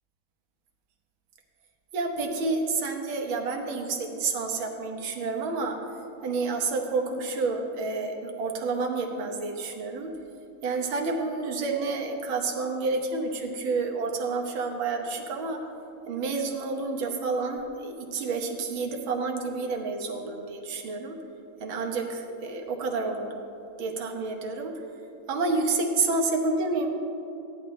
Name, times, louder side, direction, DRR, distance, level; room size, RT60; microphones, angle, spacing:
voice 1, 1.9-5.8 6.2-10.1 10.6-15.6 16.1-21.2 21.6-23.4 23.8-24.7 25.3-26.9, right 3 dB, 70° right, 3 dB, 1.9 m, -29 dB
16.5 x 10.5 x 3.2 m, 2.9 s
omnidirectional pair, 2.3 m